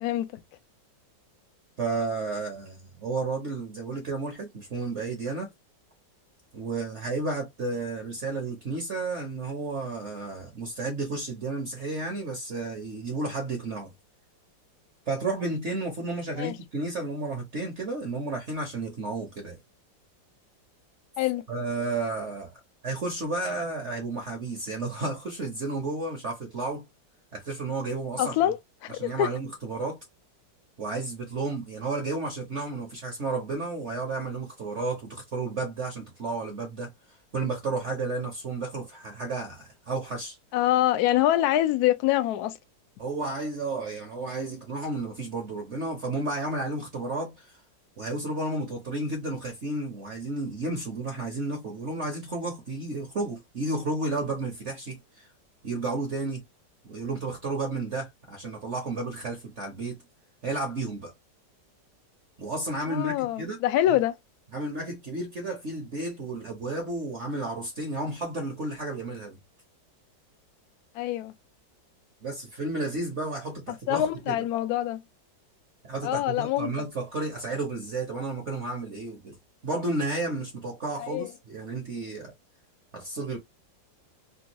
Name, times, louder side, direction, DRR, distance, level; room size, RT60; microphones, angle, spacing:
voice 1, 0.0-0.4 16.4-16.5 21.2-21.4 28.2-29.3 40.5-42.6 62.9-64.2 70.9-71.3 73.9-75.0 76.0-76.7 81.0-81.3, left 13 dB, 70° left, 0.9 m, -25 dB
voice 2, 1.8-5.5 6.5-13.9 15.1-19.6 21.5-22.5 22.8-26.8 27.3-28.4 28.9-30.0 30.8-40.4 43.0-47.6 48.0-55.3 55.6-56.4 56.8-60.0 60.4-61.1 62.4-63.6 64.5-69.4 72.2-74.4 75.8-79.4 79.6-82.3 82.9-83.4, right 3 dB, 50° right, 0.9 m, -32 dB
3.5 x 2.3 x 2.9 m
omnidirectional pair, 2.0 m